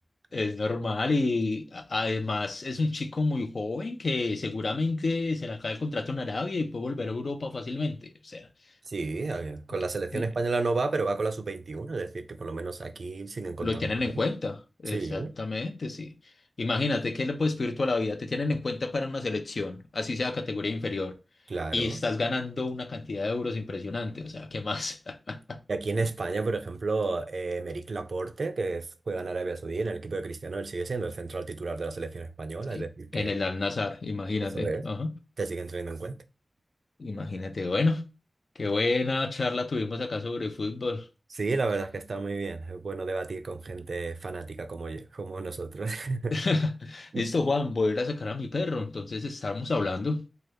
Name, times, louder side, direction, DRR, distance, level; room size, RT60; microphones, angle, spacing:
voice 1, 0.3-8.5 10.1-10.2 13.6-16.1 16.6-21.1 21.7-25.6 32.7-32.9 33.1-35.1 37.0-38.0 38.6-41.1 46.3-50.3, left 3 dB, 65° left, 0.4 m, -29 dB
voice 2, 8.9-13.9 14.1-14.2 14.9-15.4 21.5-22.0 25.7-33.3 34.4-34.9 35.4-36.2 41.4-46.3 47.1-47.2, right 3 dB, 75° right, 0.3 m, -32 dB
3.2 x 2.3 x 3.2 m
wide cardioid pair, 95°, 0 cm